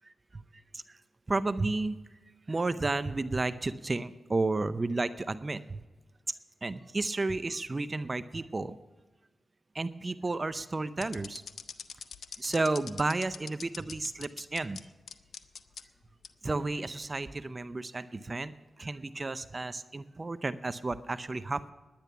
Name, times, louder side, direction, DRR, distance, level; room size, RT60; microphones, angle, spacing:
voice 1, 1.3-2.0 2.5-5.8 6.6-8.8 9.7-11.4 12.4-14.8 16.4-18.5 18.8-21.7, right 3 dB, 40° right, 14 dB, 0.6 m, -32 dB
sound 1, 11.0-14.8 15.1-15.8 16.2-16.3 17.0-17.3, left 6 dB, 75° left, 0.6 m, -42 dB
10.5 x 10.5 x 6.9 m, 1.2 s
cardioid pair, 45°, 0 cm